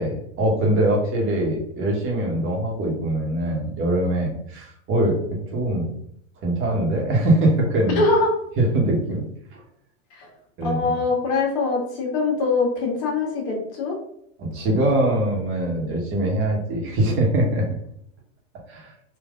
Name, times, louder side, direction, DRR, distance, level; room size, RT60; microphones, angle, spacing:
voice 1, 0.0-5.2 5.5-5.9 6.4-8.0 8.6-9.2 9.5-9.6 10.6-10.8 14.4-17.6 18.7-18.9, right 1 dB, 35° right, -1 dB, 1.3 m, -22 dB
voice 2, 8.0-8.3 10.1-10.3 10.6-13.9, left 3 dB, 50° left, 0 dB, 1.4 m, -23 dB
3.7 x 2.6 x 3.7 m, 0.69 s
supercardioid pair, 130°, 38 cm